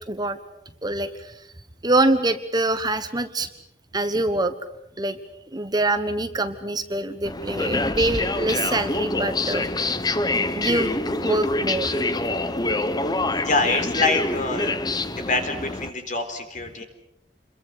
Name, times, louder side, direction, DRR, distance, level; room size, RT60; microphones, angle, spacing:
voice 1, 0.1-0.4 0.8-1.3 1.8-3.5 3.9-4.5 5.0-5.2 5.5-9.7 10.5-11.9, right 2 dB, 25° right, 9 dB, 1.3 m, -24 dB
sound 1, 7.2-15.9, left 2 dB, 25° left, 1.1 m, -26 dB
voice 2, 13.3-14.7 15.0-16.8, left 3 dB, 45° left, 7 dB, 3.9 m, -25 dB
28.5 x 22.5 x 6.7 m, 0.81 s
head